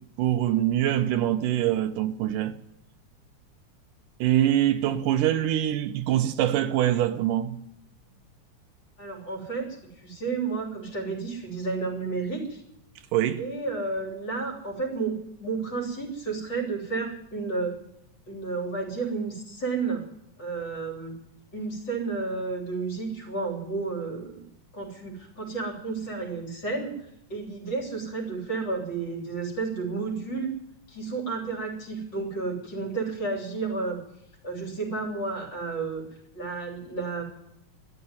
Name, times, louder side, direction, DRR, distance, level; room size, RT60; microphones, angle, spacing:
voice 1, 0.0-2.5 4.2-7.6 13.1-13.4, right 12 dB, 80° right, 2.4 m, -24 dB
voice 2, 9.0-12.6 13.4-17.7 18.3-20.0 20.4-21.1 21.5-24.4 24.7-30.5 30.9-34.0 34.4-37.2, right 4 dB, 35° left, 4.0 m, -32 dB
13.0 x 11.0 x 9.5 m
omnidirectional pair, 3.7 m